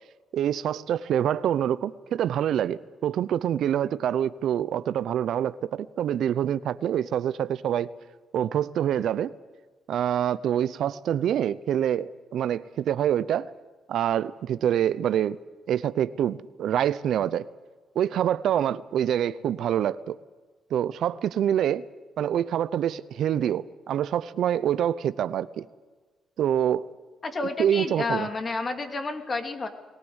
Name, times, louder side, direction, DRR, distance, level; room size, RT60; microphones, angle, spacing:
voice 1, 0.3-7.9 8.3-9.3 9.9-13.5 13.9-15.4 15.7-17.5 17.9-20.2 20.7-21.8 22.2-25.7 26.4-26.8 27.6-28.3, right 10 dB, 70° right, 0.7 m, -26 dB
voice 2, 27.2-29.7, left 3 dB, 35° left, 2.8 m, -30 dB
21.5 x 18.0 x 8.1 m
cardioid pair, 90°, 0 cm